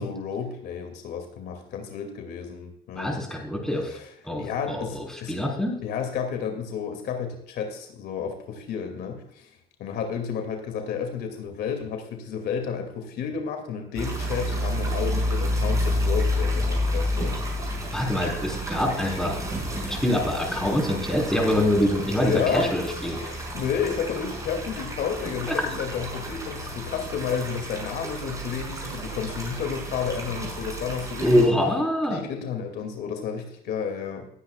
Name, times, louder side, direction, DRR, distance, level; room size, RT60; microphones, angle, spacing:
voice 1, 0.0-3.2 3.9-5.3 5.8-9.5 9.8-17.4 22.2-22.7 23.1-31.5 32.1-34.3, left 7 dB, 75° left, 5 dB, 2.5 m, -31 dB
voice 2, 2.9-3.9 4.2-5.8 17.9-19.4 19.9-23.2 25.5-25.6 31.2-32.2, left 1 dB, 5° left, 0 dB, 4.0 m, -24 dB
sound 1, 14.0-31.5, equal, 20° right, 5.3 m, -30 dB
19.5 x 9.7 x 2.4 m, 0.73 s
cardioid pair, 110°, 17 cm